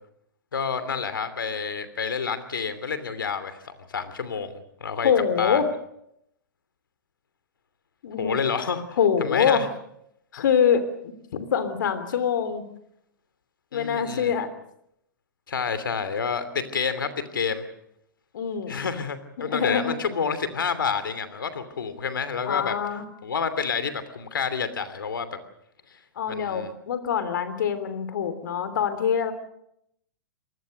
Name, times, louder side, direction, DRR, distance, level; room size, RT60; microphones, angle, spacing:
voice 1, 0.5-4.5 4.8-5.1 5.4-5.6 8.2-9.7 13.7-14.3 15.5-17.6 18.7-22.7 23.2-25.3 25.9-26.0 26.3-26.7, left 6 dB, 85° left, 12 dB, 2.8 m, -29 dB
voice 2, 5.0-5.7 8.0-8.3 9.0-9.7 10.3-12.7 13.7-14.5 18.3-18.8 19.4-20.0 22.4-23.1 26.2-29.3, left 7 dB, 70° left, 12 dB, 3.1 m, -24 dB
25.5 x 19.5 x 6.6 m, 0.75 s
hypercardioid pair, 125°, 11 cm